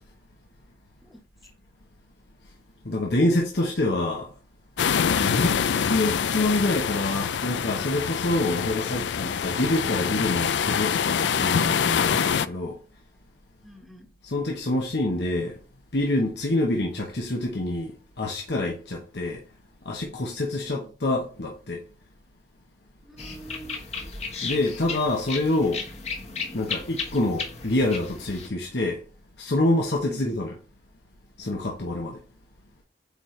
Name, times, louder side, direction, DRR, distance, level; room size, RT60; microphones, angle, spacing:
voice 1, 2.8-4.3 5.2-12.8 14.2-15.5 15.9-19.4 19.8-21.8 24.4-25.8 26.5-29.0 29.4-30.5 31.4-32.2, left 1 dB, 70° left, 1.1 m, -26 dB
sound 1, 4.8-12.5, left 7 dB, 90° left, 0.4 m, -25 dB
voice 2, 13.6-14.1 20.5-20.9 23.0-23.8 30.0-30.4, right 1 dB, ahead, 1.2 m, -45 dB
sound 2, 23.2-28.5, left 5 dB, 40° left, 1.3 m, -35 dB
8.6 x 4.4 x 3.3 m
head